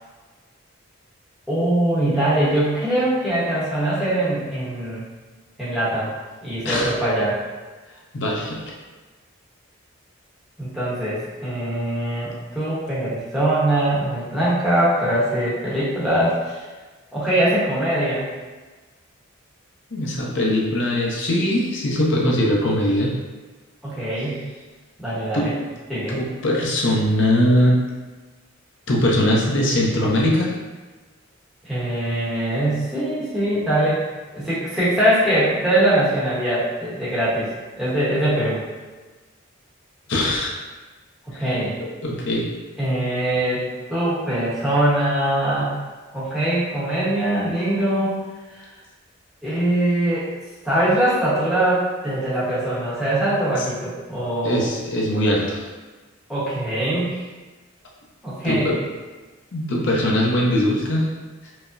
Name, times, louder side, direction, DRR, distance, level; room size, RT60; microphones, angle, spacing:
voice 1, 1.5-5.0 5.6-6.1 6.4-7.4 10.6-16.6 17.1-18.3 23.8-24.4 25.0-25.5 25.9-26.2 31.6-34.0 34.3-37.5 37.8-38.6 41.3-41.7 42.8-43.6 43.9-45.7 46.1-48.2 48.5-48.7 49.4-50.3 50.6-54.7 56.3-57.2 58.2-58.8, right 1 dB, ahead, -11 dB, 0.9 m, -22 dB
voice 2, 8.1-8.6 19.9-23.1 25.3-25.5 26.1-27.8 28.9-30.6 40.1-40.5 41.3-41.4 41.8-42.5 54.4-55.6 58.4-58.8 59.5-61.1, left 1 dB, 60° left, -3 dB, 0.7 m, -21 dB
4.7 x 2.1 x 2.5 m, 1.3 s
head